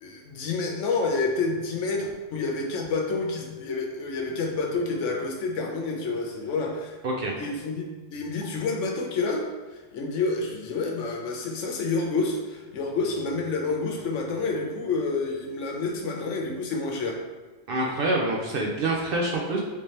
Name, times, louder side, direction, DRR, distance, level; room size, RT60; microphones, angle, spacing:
voice 1, 0.0-7.0 7.4-9.4 9.7-17.2, left 3 dB, 75° left, 1 dB, 0.9 m, -29 dB
voice 2, 7.0-7.3 17.7-19.6, right 2 dB, 60° right, -1 dB, 0.6 m, -26 dB
3.4 x 2.8 x 3.2 m, 1.3 s
omnidirectional pair, 1.3 m